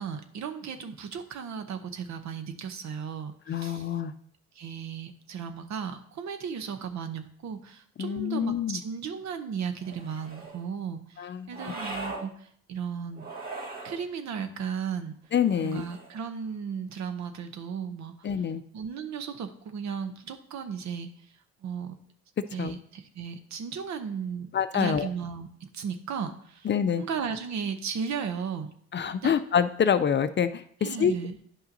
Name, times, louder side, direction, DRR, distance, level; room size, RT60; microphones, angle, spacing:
voice 1, 0.0-3.9 4.5-13.2 13.8-15.1 15.6-18.4 18.7-21.1 21.6-22.0 22.5-26.7 27.0-28.7 29.0-29.4 30.8-31.4, right 6 dB, 65° right, 8 dB, 0.8 m, -35 dB
voice 2, 3.5-4.1 8.0-8.8 11.2-11.5 15.3-15.8 18.2-18.6 22.6-22.7 24.5-25.1 26.7-27.0 28.9-30.5 30.8-31.1, left 8 dB, 40° left, 12 dB, 0.4 m, -26 dB
sound 1, 9.8-10.6 11.5-12.3 13.1-14.0 15.4-16.2, right 3 dB, 30° right, 1.6 m, -40 dB
10.0 x 5.6 x 2.7 m, 0.64 s
cardioid pair, 90°, 30 cm